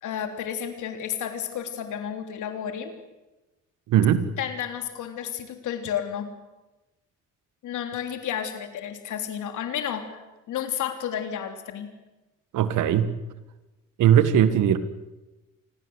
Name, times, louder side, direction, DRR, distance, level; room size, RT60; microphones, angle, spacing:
voice 1, 0.0-2.9 4.4-6.3 7.6-11.9, left 9 dB, 80° left, 7 dB, 3.4 m, -32 dB
voice 2, 3.9-4.3 12.5-13.1 14.0-14.8, right 10 dB, 85° right, 13 dB, 1.8 m, -19 dB
27.5 x 20.5 x 8.1 m, 1.1 s
cardioid pair, 90°, 30 cm